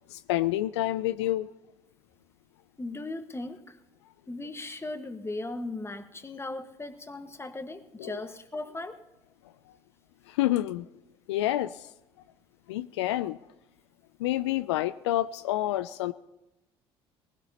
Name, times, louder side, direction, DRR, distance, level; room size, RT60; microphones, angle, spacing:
voice 1, 0.1-1.5 8.0-8.2 9.7-9.8 10.3-10.9 11.3-11.9 12.7-13.4 14.2-16.1, left 14 dB, 80° left, 14 dB, 0.4 m, -28 dB
voice 2, 2.8-3.8 4.3-9.0, left 2 dB, 20° left, 8 dB, 1.5 m, -37 dB
19.5 x 16.0 x 2.9 m, 0.98 s
hypercardioid pair, 60°, 14 cm